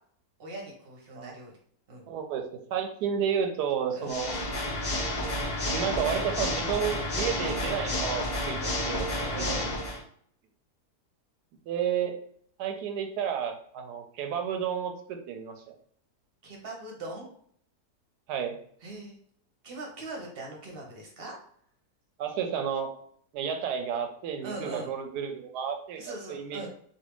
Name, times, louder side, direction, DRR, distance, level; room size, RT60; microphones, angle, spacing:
voice 1, 0.4-1.5 1.9-2.1 3.9-4.2 9.3-9.9 16.4-17.3 18.8-19.2 19.6-21.3 24.4-24.9 26.0-26.7, right 2 dB, 45° right, -1 dB, 0.9 m, -40 dB
voice 2, 2.1-2.4 2.7-4.4 5.6-9.5 11.7-12.1 12.6-15.7 18.3-18.6 22.2-22.9 23.3-26.7, right 8 dB, 80° right, 5 dB, 1.1 m, -31 dB
Water / Mechanisms, 4.0-10.0, left 1 dB, 70° left, 0.4 m, -30 dB
3.3 x 2.5 x 2.9 m, 0.62 s
omnidirectional pair, 1.7 m